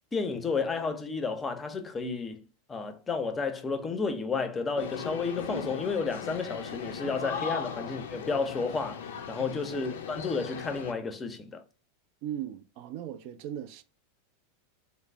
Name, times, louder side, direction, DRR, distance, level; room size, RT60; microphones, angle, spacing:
voice 1, 0.1-2.4 2.7-11.6, left 4 dB, 20° left, 0.5 m, -32 dB
sound 1, 4.8-10.9, left 6 dB, 70° left, 0.4 m, -38 dB
voice 2, 12.2-13.8, right 10 dB, 55° right, 0.3 m, -38 dB
3.1 x 2.0 x 3.3 m
hypercardioid pair, 95°, 0 cm